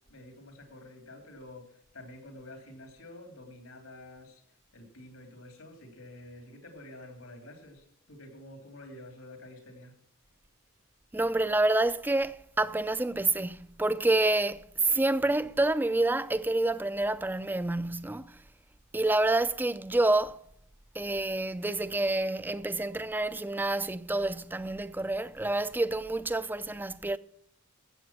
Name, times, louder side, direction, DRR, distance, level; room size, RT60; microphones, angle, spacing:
voice 1, 0.1-10.0, left 1 dB, 85° left, 3.3 m, -49 dB
voice 2, 11.1-18.4 18.9-20.4 20.9-27.2, right 2 dB, 10° right, 0.4 m, -28 dB
13.5 x 8.3 x 6.1 m
head